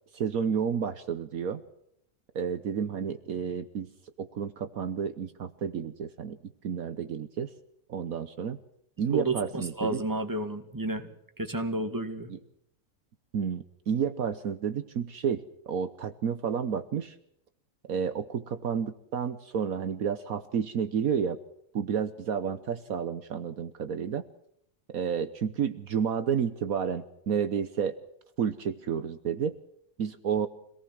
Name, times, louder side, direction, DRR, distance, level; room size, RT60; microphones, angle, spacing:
voice 1, 0.1-1.6 2.3-3.9 4.2-6.4 6.6-7.5 7.9-8.6 9.0-10.0 12.3-12.4 13.3-17.2 17.9-21.4 21.7-24.2 24.9-28.0 28.4-29.6 30.0-30.5, right 7 dB, 65° right, 10 dB, 1.4 m, -30 dB
voice 2, 9.1-11.1 11.4-12.3, right 2 dB, 10° right, 6 dB, 2.2 m, -31 dB
25.5 x 18.5 x 6.2 m, 0.73 s
omnidirectional pair, 1.6 m